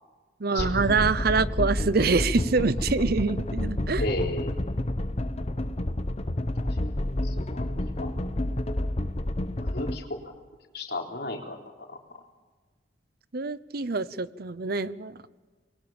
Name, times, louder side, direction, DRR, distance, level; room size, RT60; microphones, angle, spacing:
voice 1, 0.4-4.0 13.3-15.1, right 4 dB, 60° right, 17 dB, 0.8 m, -25 dB
sound 1, 0.6-10.0, left 1 dB, 35° left, 1.0 m, -29 dB
voice 2, 4.0-4.7 6.6-6.7 7.2-7.7 8.0-8.1 9.6-10.3 10.7-12.0, left 2 dB, 65° left, 2 dB, 3.9 m, -34 dB
25.5 x 22.0 x 7.3 m, 1.4 s
head